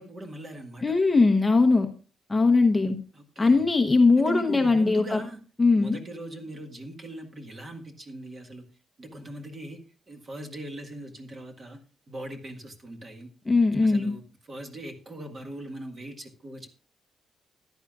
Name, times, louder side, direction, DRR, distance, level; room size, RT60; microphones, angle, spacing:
voice 1, 0.0-0.8 3.4-3.6 4.3-5.4 5.8-8.6 9.0-9.8 10.1-11.8 12.1-13.3 13.8-14.2 14.5-16.7, right 1 dB, 25° right, 1.7 m, -39 dB
voice 2, 0.8-1.9 2.3-3.0 3.4-5.2 5.6-6.0 13.5-14.1, left 3 dB, 15° left, 1.0 m, -20 dB
14.0 x 10.5 x 2.4 m
cardioid pair, 160°, 0 cm